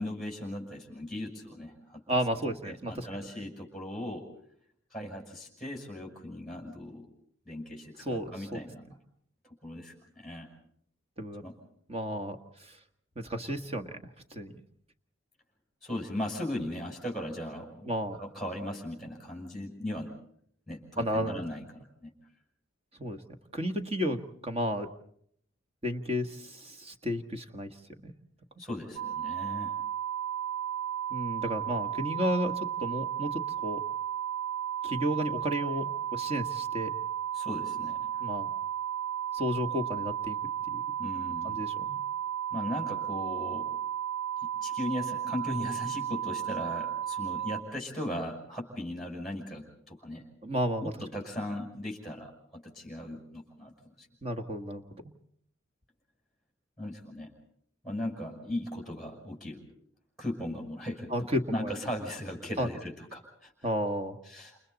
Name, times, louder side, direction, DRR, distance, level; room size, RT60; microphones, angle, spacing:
voice 1, 0.0-2.2 2.6-4.3 4.9-7.1 7.4-8.8 9.6-10.5 11.4-11.5 15.8-17.9 18.2-20.1 20.7-21.6 22.0-22.1 28.6-29.7 37.3-38.1 41.0-41.6 42.5-43.7 44.6-50.2 50.8-53.9 56.8-57.3 57.8-59.6 60.2-63.5 64.3-64.6, left 1 dB, ahead, 0 dB, 6.3 m, -38 dB
voice 2, 2.1-3.1 8.0-8.6 11.2-11.5 11.9-12.7 13.1-14.0 14.3-14.6 17.8-18.2 21.0-21.4 23.0-23.2 23.5-24.9 25.8-27.7 28.0-28.1 31.1-33.8 34.8-36.9 38.2-38.5 39.3-40.4 40.7-40.8 41.4-42.0 50.4-50.9 54.2-54.8 61.1-61.8 62.6-62.7 63.6-64.2, equal, 30° right, 6 dB, 1.7 m, -32 dB
sound 1, 29.0-47.6, right 10 dB, 85° right, 1.2 m, -34 dB
29.5 x 28.5 x 4.2 m, 0.66 s
head